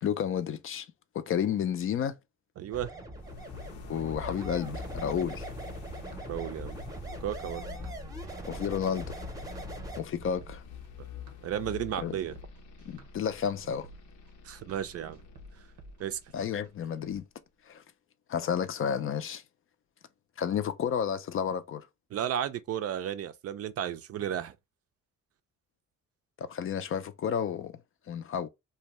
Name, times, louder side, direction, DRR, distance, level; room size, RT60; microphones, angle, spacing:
voice 1, 0.0-0.9 1.1-2.2 3.8-5.5 8.4-9.2 10.0-10.6 12.0-12.1 12.9-13.9 16.3-17.2 17.7-17.8 18.3-19.4 20.4-21.9 26.4-27.8 28.1-28.5, left 8 dB, 45° left, 0.4 m, -31 dB
voice 2, 2.6-2.9 6.3-6.8 7.2-7.6 11.4-12.4 14.4-15.2 16.0-16.2 22.1-24.5, right 10 dB, 50° right, 0.4 m, -33 dB
sound 1, 2.7-10.0, right 2 dB, 10° right, 0.7 m, -41 dB
sound 2, 3.1-17.0, left 9 dB, 80° left, 0.6 m, -46 dB
sound 3, 3.6-17.2, right 3 dB, 90° right, 0.7 m, -53 dB
2.6 x 2.2 x 2.9 m
cardioid pair, 90°, 30 cm